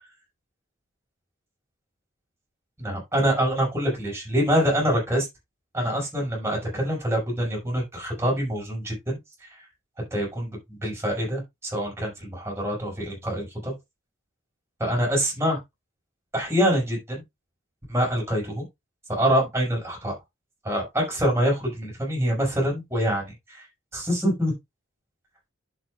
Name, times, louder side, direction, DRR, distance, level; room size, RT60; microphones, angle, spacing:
voice 1, 2.8-5.3 5.7-9.2 10.1-13.7 14.8-15.6 16.3-17.2 17.9-18.6 19.1-20.2 20.6-23.7 23.9-24.5, equal, 15° right, 5.5 m, -25 dB
11.0 x 7.4 x 2.4 m
head